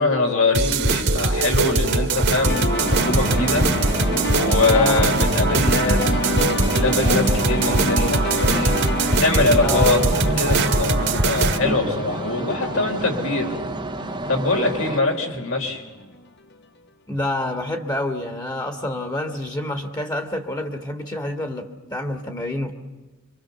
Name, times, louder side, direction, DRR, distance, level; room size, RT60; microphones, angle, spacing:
voice 1, 0.0-3.7 4.3-8.8 9.2-13.6 14.3-15.8, left 3 dB, 70° left, 2 dB, 3.8 m, -23 dB
sound 1, 0.5-11.6, right 3 dB, 55° right, 1.7 m, -21 dB
sound 2, 2.4-16.2, left 1 dB, 50° left, 1.2 m, -28 dB
sound 3, 2.8-15.0, right 2 dB, 20° right, 0.8 m, -30 dB
voice 2, 4.7-5.1 9.6-10.1 17.1-22.7, left 1 dB, 20° left, 6 dB, 1.6 m, -28 dB
26.0 x 24.5 x 6.9 m, 1.2 s
head